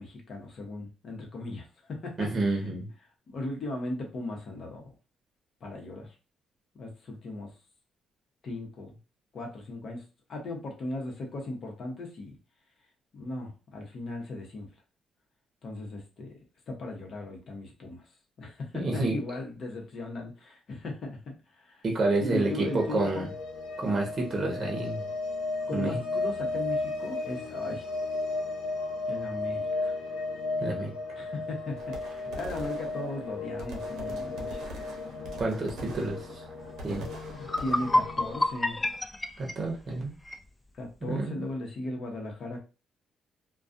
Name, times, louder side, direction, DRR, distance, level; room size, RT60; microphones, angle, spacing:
voice 1, 0.0-2.7 3.3-4.9 5.6-6.1 6.8-7.5 8.4-9.0 9.3-10.0 10.3-12.4 13.1-14.7 15.6-16.3 16.7-18.0 18.4-21.8 22.2-23.3 25.7-27.9 29.1-29.9 31.2-34.7 37.3-38.8 40.7-42.6, left 2 dB, 55° left, 1 dB, 0.9 m, -37 dB
voice 2, 2.2-2.9 18.7-19.2 21.8-23.3 23.8-25.0 25.7-26.0 30.6-30.9 35.4-36.4 36.8-37.1 39.4-40.1 41.0-41.4, right 2 dB, 40° right, 0 dB, 0.8 m, -29 dB
sound 1, 22.3-38.5, left 3 dB, 85° left, 0.7 m, -35 dB
sound 2, 31.8-38.0, right 1 dB, 75° right, 0.7 m, -44 dB
sound 3, 37.4-40.5, left 1 dB, 15° left, 0.3 m, -29 dB
2.3 x 2.3 x 2.5 m, 0.32 s
cardioid pair, 90°, 0 cm